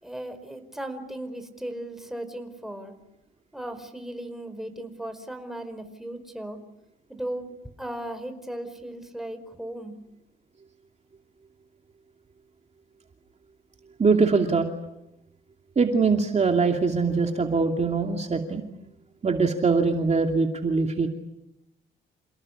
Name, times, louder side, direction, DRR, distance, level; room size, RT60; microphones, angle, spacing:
voice 1, 0.0-3.0 3.5-6.6 7.1-7.5 7.8-10.0, right 1 dB, ahead, 7 dB, 4.7 m, -36 dB
voice 2, 14.0-14.7 15.8-18.6 19.2-21.1, right 4 dB, 35° right, 4 dB, 2.8 m, -22 dB
29.0 x 18.0 x 10.0 m, 0.90 s
cardioid pair, 90°, 20 cm